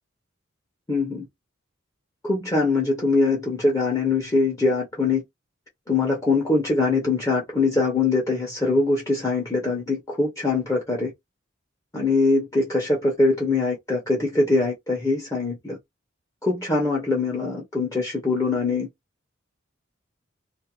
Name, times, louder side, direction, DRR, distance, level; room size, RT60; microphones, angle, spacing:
voice 1, 0.9-1.3 2.2-5.2 5.9-11.1 11.9-15.8 16.4-18.9, left 3 dB, 15° left, 0.7 m, -23 dB
2.4 x 2.1 x 2.9 m
head